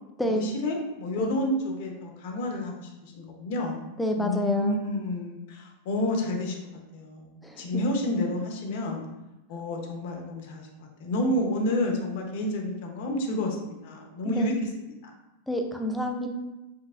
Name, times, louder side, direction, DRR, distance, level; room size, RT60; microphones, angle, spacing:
voice 1, 0.3-3.8 4.2-9.1 9.5-14.5 15.0-15.1, left 1 dB, 60° left, 2 dB, 0.7 m, -30 dB
voice 2, 4.0-4.7 7.4-7.8 14.3-14.5 15.5-16.3, left 1 dB, 5° left, 3 dB, 0.3 m, -28 dB
4.5 x 2.5 x 2.4 m, 0.99 s
supercardioid pair, 160°, 0 cm